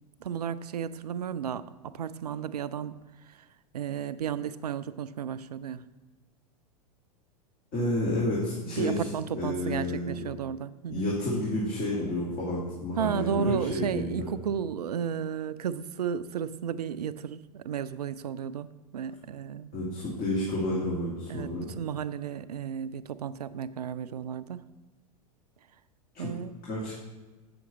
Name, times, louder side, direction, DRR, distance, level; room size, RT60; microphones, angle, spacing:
voice 1, 0.2-2.9 3.2-3.5 3.7-5.8 8.7-11.1 13.0-19.7 21.3-24.7 26.2-26.6, right 8 dB, 75° right, 14 dB, 0.4 m, -33 dB
voice 2, 7.7-9.0 9.3-10.2 10.9-14.3 19.7-21.7 26.1-26.3 26.7-26.9, left 1 dB, 40° left, -6 dB, 2.2 m, -30 dB
7.7 x 6.0 x 4.0 m, 1.2 s
figure-of-eight pair, 90°, 20 cm